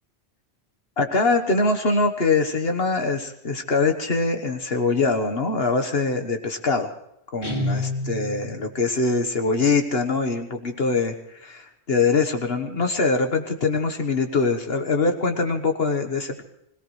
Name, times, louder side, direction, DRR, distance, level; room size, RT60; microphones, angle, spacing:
voice 1, 1.0-6.9 7.3-16.4, left 3 dB, 70° left, 5 dB, 1.5 m, -23 dB
Guitar, 7.4-8.7, left 1 dB, 50° left, 2.9 m, -28 dB
25.5 x 17.5 x 3.2 m, 0.84 s
omnidirectional pair, 1.1 m